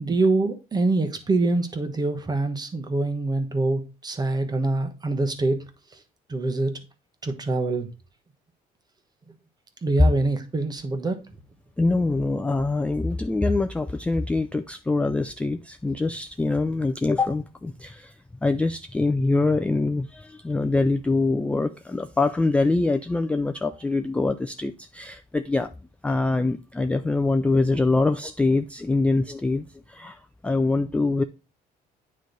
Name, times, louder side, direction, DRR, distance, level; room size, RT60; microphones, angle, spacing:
voice 1, 0.0-5.6 5.9-6.0 6.3-6.8 7.2-7.9 9.8-11.2, right 2 dB, 25° right, 1.1 m, -25 dB
voice 2, 11.8-18.1 18.4-25.7 26.0-31.2, left 3 dB, 5° left, 0.3 m, -24 dB
9.4 x 3.2 x 3.9 m
cardioid pair, 110°, 17 cm